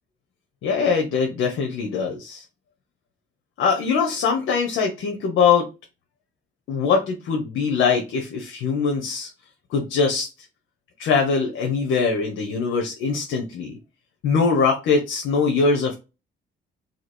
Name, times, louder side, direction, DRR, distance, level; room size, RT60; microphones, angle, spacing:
voice 1, 0.6-2.4 3.6-5.7 6.7-9.3 9.7-10.3 11.0-13.7 14.2-15.9, left 5 dB, 80° left, 2 dB, 0.8 m, -22 dB
3.0 x 2.7 x 4.2 m, 0.28 s
cardioid pair, 90°, 20 cm